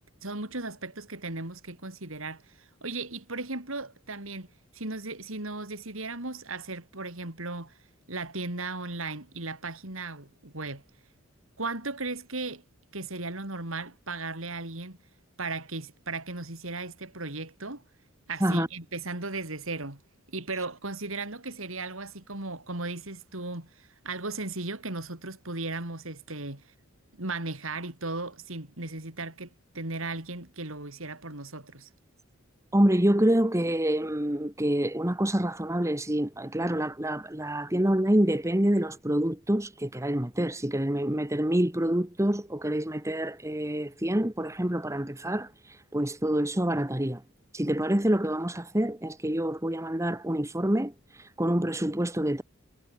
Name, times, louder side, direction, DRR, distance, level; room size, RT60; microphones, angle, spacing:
voice 1, 0.2-4.5 4.7-7.7 8.1-10.8 11.6-12.6 12.9-15.0 15.4-17.8 18.3-20.0 20.3-26.6 27.2-31.9, right 3 dB, 70° right, 4.1 m, -36 dB
voice 2, 32.7-47.2 47.5-52.4, right 1 dB, 15° right, 1.4 m, -27 dB
head